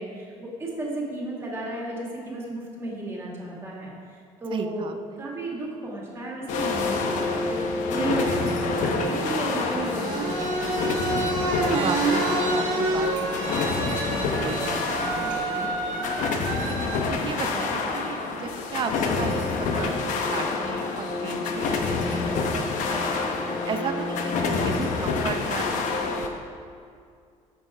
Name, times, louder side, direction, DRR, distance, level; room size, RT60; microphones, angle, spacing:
voice 1, 0.0-10.5, right 1 dB, 20° right, -3 dB, 1.9 m, -33 dB
voice 2, 4.5-5.2 11.7-16.2 16.7-23.1 23.6-26.1, right 6 dB, 40° right, 7 dB, 0.6 m, -35 dB
sound 1, 6.5-26.3, left 4 dB, 75° left, 1.0 m, -27 dB
sound 2, 9.7-17.0, right 2 dB, 80° right, 1.4 m, -28 dB
9.6 x 7.0 x 4.7 m, 2.3 s
cardioid pair, 170°, 13 cm